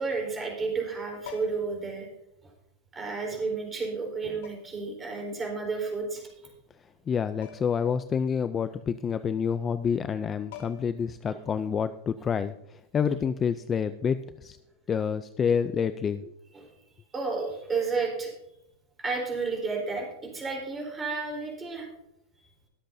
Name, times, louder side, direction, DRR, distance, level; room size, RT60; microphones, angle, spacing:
voice 1, 0.0-2.1 2.9-6.3 11.3-11.4 16.5-16.7 17.1-18.3 19.0-21.9 22.4-22.5, right 4 dB, 15° right, 0 dB, 4.0 m, -32 dB
sound 1, 1.2-1.8 3.1-3.2 4.4-4.9 7.4-7.8 8.2-8.3 10.1-10.2 10.5-11.1 13.1-13.3, left 8 dB, 65° left, 3.5 m, -46 dB
voice 2, 7.1-14.6 14.9-16.3, left 7 dB, 20° left, 12 dB, 0.4 m, -28 dB
22.0 x 7.8 x 2.7 m, 0.83 s
supercardioid pair, 155°, 0 cm